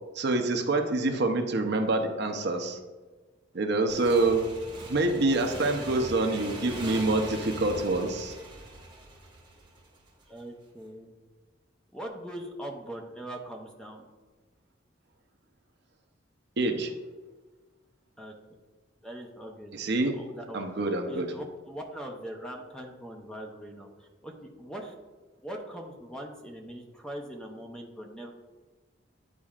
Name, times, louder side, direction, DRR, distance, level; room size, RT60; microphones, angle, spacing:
voice 1, 0.1-2.8 3.5-4.5 4.9-8.4 16.6-16.9 19.7-20.1 20.5-21.3, right 2 dB, 60° right, 5 dB, 0.7 m, -26 dB
Motorcycle / Engine, 3.9-10.2, right 2 dB, 25° right, 1.1 m, -41 dB
voice 2, 5.3-6.3 10.3-11.1 11.9-14.1 18.2-18.3 19.0-20.7 21.1-24.9 25.4-28.3, equal, 5° left, 1 dB, 0.6 m, -41 dB
10.5 x 4.2 x 2.4 m, 1.3 s
head